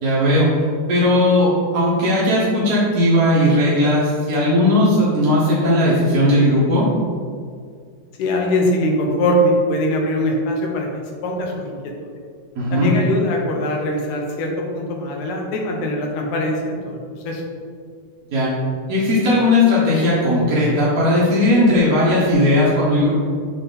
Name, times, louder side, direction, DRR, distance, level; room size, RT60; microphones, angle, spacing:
voice 1, 0.0-0.5 0.9-6.8 12.5-12.9 18.3-18.5 18.9-23.1, left 1 dB, 60° right, -9 dB, 0.9 m, -17 dB
voice 2, 8.2-10.9 11.2-12.1 12.7-17.0 17.3-17.4, left 1 dB, 90° left, 1 dB, 2.3 m, -22 dB
5.9 x 4.1 x 4.0 m, 2.1 s
omnidirectional pair, 3.4 m